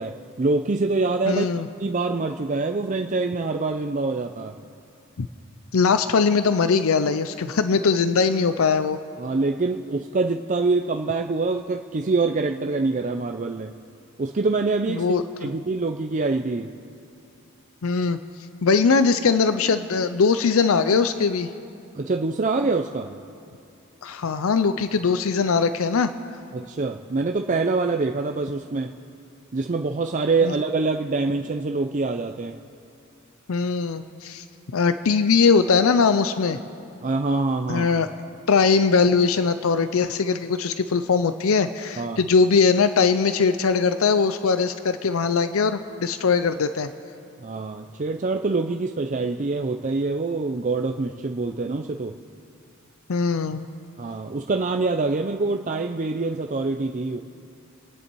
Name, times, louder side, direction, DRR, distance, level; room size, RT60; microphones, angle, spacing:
voice 1, 0.0-1.5 1.8-4.6 9.2-13.7 14.2-15.1 15.4-16.7 21.9-23.1 26.5-28.9 29.5-32.6 37.0-38.0 42.0-42.2 47.4-52.1 54.0-57.2, right 3 dB, 35° right, 4 dB, 0.5 m, -25 dB
voice 2, 1.3-1.7 5.2-5.3 5.7-9.0 14.9-15.5 17.8-18.2 18.6-21.5 24.0-26.1 30.4-30.5 33.5-34.4 34.7-36.6 37.7-38.1 38.5-46.9 53.1-53.6, left 5 dB, 75° left, 11 dB, 0.5 m, -21 dB
30.0 x 10.0 x 4.6 m, 2.7 s
head